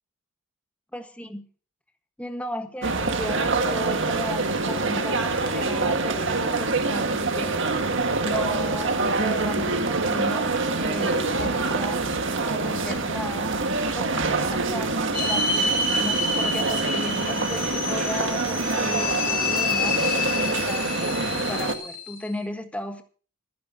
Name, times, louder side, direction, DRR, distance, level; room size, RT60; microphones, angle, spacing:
voice 1, 0.9-1.4 2.2-7.7 8.2-12.1 12.4-13.5 13.9-23.0, left 1 dB, 5° left, 6 dB, 1.5 m, -35 dB
sound 1, 2.8-21.7, right 3 dB, 60° right, 1.8 m, -25 dB
sound 2, 15.1-22.3, left 3 dB, 40° left, 2.8 m, -28 dB
26.0 x 10.0 x 2.9 m, 0.39 s
head